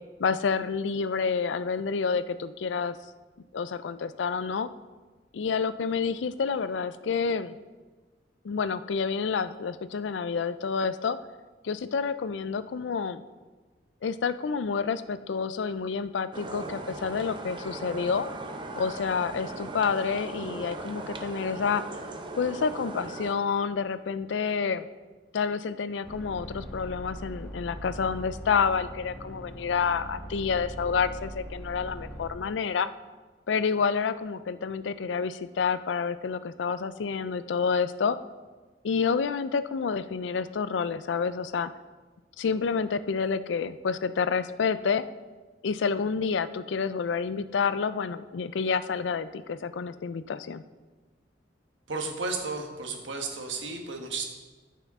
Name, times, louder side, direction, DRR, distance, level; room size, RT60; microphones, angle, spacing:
voice 1, 0.2-3.0 3.5-4.7 5.3-7.6 8.4-11.2 11.6-13.2 14.0-18.3 18.8-21.8 22.4-24.9 25.3-32.9 33.5-38.2 38.8-41.7 42.4-45.0 45.6-50.6, left 5 dB, 80° left, 14 dB, 0.4 m, -29 dB
sound 1, 16.3-23.3, right 2 dB, 25° right, 0.6 m, -38 dB
sound 2, 26.0-32.3, equal, 5° left, 1.4 m, -41 dB
voice 2, 51.9-54.2, right 3 dB, 85° right, 3 dB, 1.2 m, -33 dB
13.0 x 5.7 x 3.6 m, 1.3 s
head